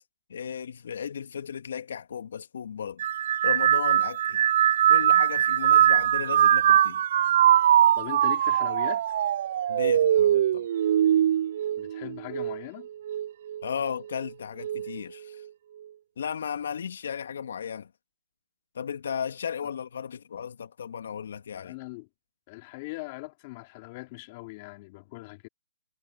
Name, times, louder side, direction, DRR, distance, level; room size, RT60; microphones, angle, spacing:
voice 1, 0.3-3.0 3.4-4.4 4.9-7.0 9.7-10.7 13.6-15.4 16.2-17.9 18.7-21.7, left 7 dB, 65° left, 2.5 m, -35 dB
sound 1, 3.0-12.6 13.1-13.6 14.6-15.0, right 11 dB, 50° right, 0.4 m, -22 dB
voice 2, 8.0-9.0 11.8-12.9 21.5-22.1 22.5-25.5, left 24 dB, 35° left, 2.9 m, -40 dB
hypercardioid pair, 145°, 0 cm